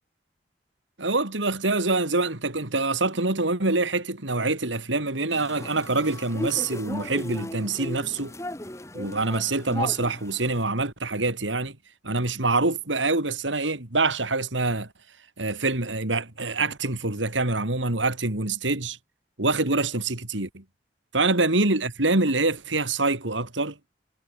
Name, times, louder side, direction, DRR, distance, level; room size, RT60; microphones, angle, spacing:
voice 1, 1.0-8.3 8.9-11.8 12.0-14.9 15.4-19.0 19.4-20.6 21.1-23.8, right 3 dB, 85° right, 3.4 m, -25 dB
sound 1, 5.3-10.7, left 1 dB, 15° left, 1.8 m, -36 dB
head